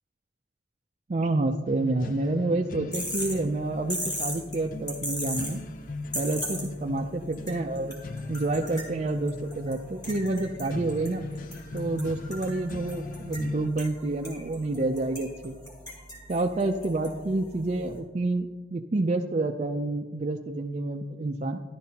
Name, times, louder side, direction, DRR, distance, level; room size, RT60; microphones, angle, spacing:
voice 1, 1.1-5.6 6.1-8.0 8.3-11.2 11.7-15.6 16.3-21.6, right 2 dB, 35° right, 2 dB, 0.4 m, -28 dB
sound 1, 1.6-13.7, left 3 dB, 45° left, 0.5 m, -39 dB
sound 2, 2.9-18.0, equal, 20° left, 2.5 m, -39 dB
12.0 x 11.5 x 2.8 m, 1.4 s
head